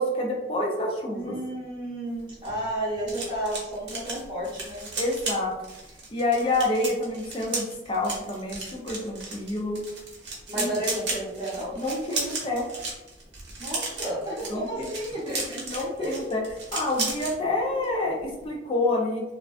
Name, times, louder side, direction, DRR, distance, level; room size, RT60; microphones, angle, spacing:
voice 1, 0.0-1.4 5.0-5.5 6.1-9.8 10.6-10.7 11.7-12.7 14.5-14.9 15.7-19.2, left 2 dB, 30° left, -1 dB, 0.4 m, -28 dB
voice 2, 1.1-4.9 10.5-11.7 13.6-16.1, right 1 dB, 25° right, -7 dB, 0.8 m, -32 dB
sound 1, 2.1-17.3 17.7-17.9 18.2-18.5, right 3 dB, 85° right, 0.8 m, -35 dB
2.4 x 2.2 x 2.3 m, 0.98 s
head